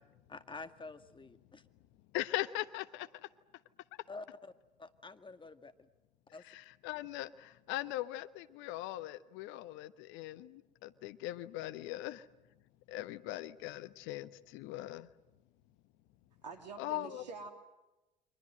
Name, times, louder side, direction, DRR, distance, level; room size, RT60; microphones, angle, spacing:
voice 1, 0.3-1.6 4.1-4.5 4.8-5.9 6.3-6.4, left 3 dB, 25° left, 10 dB, 2.0 m, -48 dB
voice 2, 2.1-3.1 6.4-12.2 12.9-15.1 16.8-17.2, left 16 dB, 65° left, 16 dB, 1.2 m, -40 dB
voice 3, 16.4-17.5, right 4 dB, 85° right, 7 dB, 3.2 m, -46 dB
30.0 x 24.5 x 7.8 m, 1.0 s
hypercardioid pair, 60°, 21 cm